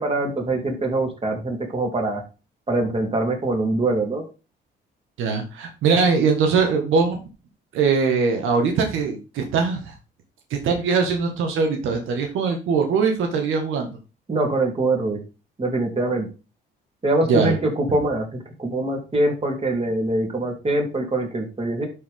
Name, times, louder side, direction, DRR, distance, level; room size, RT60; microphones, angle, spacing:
voice 1, 0.0-2.2 2.7-4.2 14.3-15.2 15.6-16.3 17.0-21.9, right 2 dB, 30° right, 1 dB, 3.4 m, -23 dB
voice 2, 5.2-7.2 7.7-9.9 10.5-13.9 17.3-17.5, right 5 dB, 85° right, 4 dB, 1.6 m, -21 dB
11.5 x 4.9 x 3.7 m, 0.30 s
cardioid pair, 90°, 20 cm